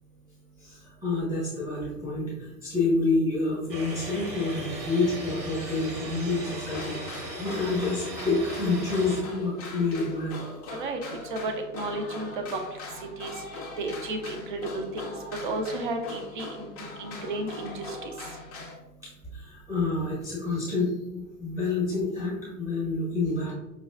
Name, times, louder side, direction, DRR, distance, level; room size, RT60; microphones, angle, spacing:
voice 1, 0.6-10.4 19.0-23.5, left 3 dB, 5° right, -6 dB, 0.8 m, -28 dB
sound 1, 3.7-9.2, right 1 dB, 85° right, 0.9 m, -37 dB
sound 2, 6.7-18.7, left 3 dB, 25° left, 0.4 m, -41 dB
voice 2, 11.3-12.6 13.2-13.3 13.8-15.1 15.4-18.1, right 2 dB, 35° right, 5 dB, 0.4 m, -33 dB
5.0 x 2.1 x 2.4 m, 1.0 s
figure-of-eight pair, 100°, 48 cm